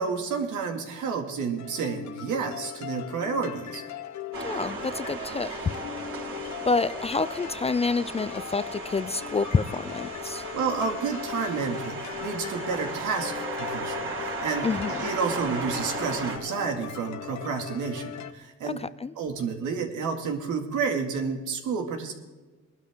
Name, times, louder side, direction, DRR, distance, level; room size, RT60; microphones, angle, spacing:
voice 1, 0.0-3.8 10.3-14.7 15.0-18.8 19.2-22.1, right 5 dB, 80° right, 3 dB, 2.3 m, -30 dB
sound 1, 1.6-18.3, left 10 dB, 65° left, 0.9 m, -39 dB
sound 2, 4.3-16.4, right 4 dB, 45° right, 4.3 m, -36 dB
voice 2, 4.4-5.7 6.7-10.4 14.6-15.1 18.6-19.1, left 4 dB, 20° left, 16 dB, 0.4 m, -28 dB
20.5 x 12.0 x 3.7 m, 1.3 s
cardioid pair, 90°, 30 cm